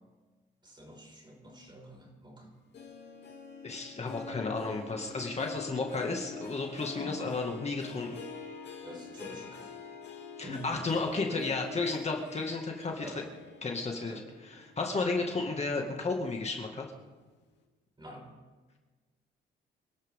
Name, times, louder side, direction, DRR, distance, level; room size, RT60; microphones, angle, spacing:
voice 1, 0.6-2.5 6.9-7.3 8.8-9.7 10.4-11.5 13.0-13.2 14.0-14.3 18.0-18.3, equal, 25° right, 1 dB, 5.4 m, -46 dB
Harp, 2.7-15.5 15.9-16.3 16.8-16.9, left 4 dB, 60° left, 2.8 m, -45 dB
voice 2, 3.6-8.2 10.4-13.2 13.6-16.9, left 3 dB, 35° left, 1 dB, 2.1 m, -33 dB
27.5 x 12.0 x 3.7 m, 1.3 s
cardioid pair, 90°, 20 cm